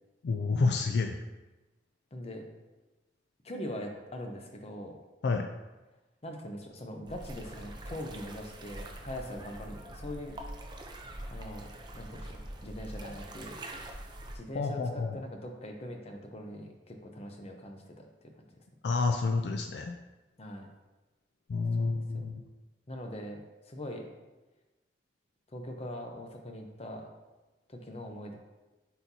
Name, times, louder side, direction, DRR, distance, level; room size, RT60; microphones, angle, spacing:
voice 1, 0.2-1.2 5.2-5.5 14.5-15.2 18.8-20.0 21.5-22.4, left 4 dB, 70° left, 5 dB, 0.4 m, -29 dB
voice 2, 2.1-2.4 3.4-5.0 6.2-10.3 11.3-13.6 14.3-18.3 20.4-20.7 21.8-22.2 22.9-24.1 25.5-27.1 27.7-28.4, equal, 35° left, 3 dB, 0.8 m, -42 dB
sound 1, 7.1-14.4, right 1 dB, 25° right, 0.6 m, -44 dB
8.0 x 4.4 x 2.8 m, 1.1 s
head